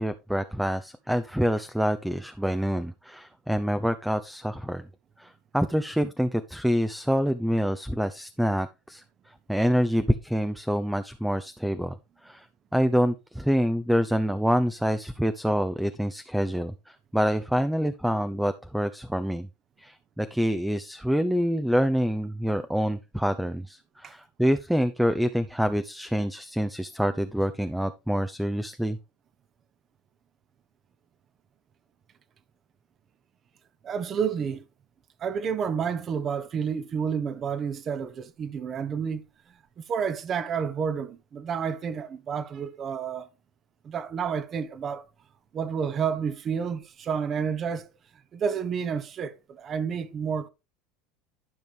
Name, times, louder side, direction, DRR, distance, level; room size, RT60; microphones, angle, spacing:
voice 1, 0.0-4.9 5.2-9.0 9.5-11.9 12.2-12.5 12.7-19.5 19.8-29.0, equal, ahead, 0.6 m, -26 dB
voice 2, 33.8-34.6 35.2-39.2 39.8-43.3 43.8-45.0 45.5-47.9 48.3-50.5, right 6 dB, 40° right, 1.0 m, -30 dB
12.0 x 5.2 x 3.4 m
hypercardioid pair, 85°, 0 cm